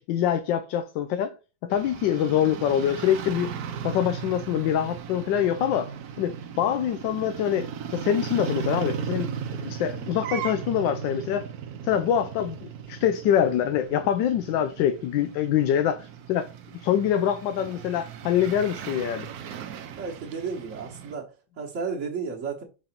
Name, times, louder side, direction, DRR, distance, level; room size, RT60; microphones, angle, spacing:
voice 1, 0.0-1.3 1.6-3.5 3.8-5.9 6.2-11.5 11.8-16.5 16.7-19.3, left 9 dB, 85° left, 1.3 m, -25 dB
sound 1, 1.7-21.2, right 7 dB, 65° right, 1.1 m, -37 dB
voice 2, 20.0-21.3 21.6-22.6, right 5 dB, 45° right, 1.4 m, -32 dB
4.9 x 3.9 x 5.7 m
omnidirectional pair, 1.9 m